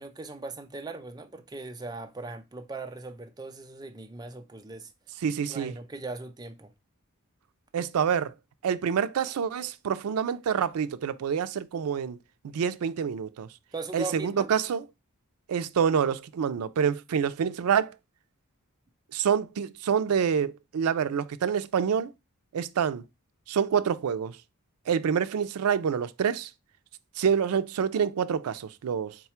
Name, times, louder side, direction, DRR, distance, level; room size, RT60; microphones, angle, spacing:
voice 1, 0.0-4.9 5.5-6.7 13.7-14.5, right 3 dB, 20° right, 0.5 m, -39 dB
voice 2, 5.2-5.7 7.7-8.3 8.6-12.2 12.4-13.5 13.9-14.8 15.5-17.9 19.1-22.1 22.5-23.0 23.5-24.4 24.9-26.5 27.2-29.2, right 7 dB, 85° right, 0.4 m, -27 dB
4.0 x 2.3 x 4.3 m
head